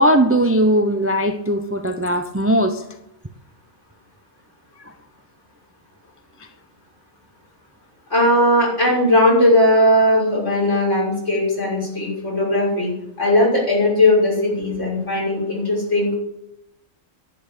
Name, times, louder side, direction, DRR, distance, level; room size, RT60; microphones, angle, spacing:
voice 1, 0.0-2.8, right 1 dB, 10° right, 7 dB, 0.7 m, -18 dB
voice 2, 8.1-16.1, left 1 dB, 60° left, -4 dB, 6.7 m, -18 dB
11.0 x 8.9 x 9.8 m, 0.82 s
omnidirectional pair, 1.4 m